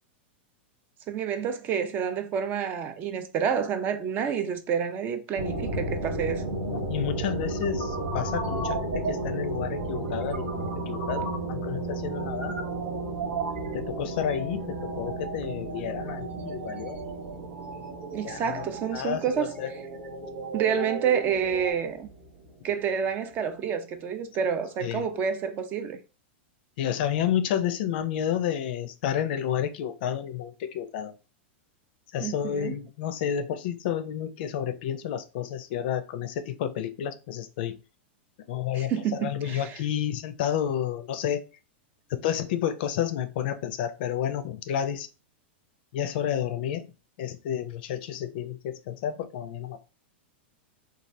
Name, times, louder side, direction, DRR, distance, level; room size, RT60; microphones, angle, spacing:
voice 1, 1.1-6.5 18.1-19.5 20.5-22.1 22.6-26.0 32.2-32.7 38.7-39.8, right 7 dB, 30° right, 0.4 m, -29 dB
sound 1, 5.4-22.8, right 2 dB, 50° right, 0.9 m, -34 dB
voice 2, 6.7-12.6 13.7-17.0 18.2-18.6 18.9-19.7 24.8-25.1 26.8-31.1 32.1-37.8 38.5-41.4 42.1-45.1 45.9-46.8 47.2-49.8, left 9 dB, 60° left, 0.5 m, -30 dB
sound 2, 7.2-21.7, right 4 dB, 80° right, 1.3 m, -37 dB
3.2 x 2.3 x 2.6 m
supercardioid pair, 140°, 6 cm